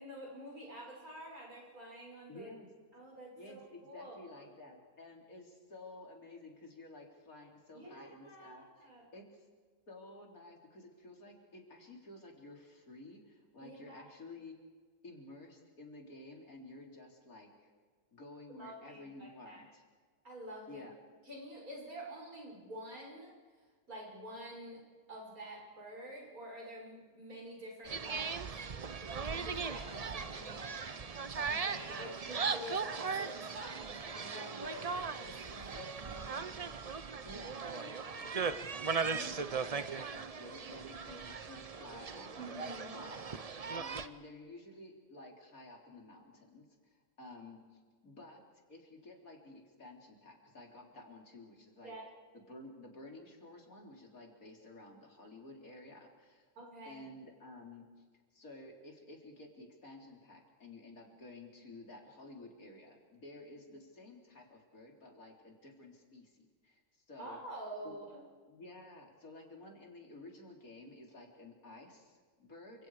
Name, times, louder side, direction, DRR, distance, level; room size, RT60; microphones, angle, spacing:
voice 1, 0.0-2.5 2.9-4.4 7.7-9.0 13.6-14.0 18.6-19.6 20.2-20.8 21.3-23.3 23.9-24.8 25.1-28.5 29.0-31.0 31.4-36.6 42.4-43.0 51.8-52.0 56.6-57.0 67.2-68.2, equal, 80° right, -2 dB, 6.9 m, -48 dB
voice 2, 2.3-2.7 3.3-9.5 9.9-14.5 15.0-17.7 18.1-19.8 20.7-20.9 31.9-32.2 37.2-42.5 42.9-51.9 52.3-56.5 56.8-58.0 58.3-67.4 67.8-68.0 68.5-72.9, left 2 dB, 75° left, 0 dB, 4.0 m, -53 dB
sound 1, 27.8-44.1, right 5 dB, 35° right, 0.6 m, -38 dB
29.5 x 26.0 x 4.9 m, 1.5 s
omnidirectional pair, 1.5 m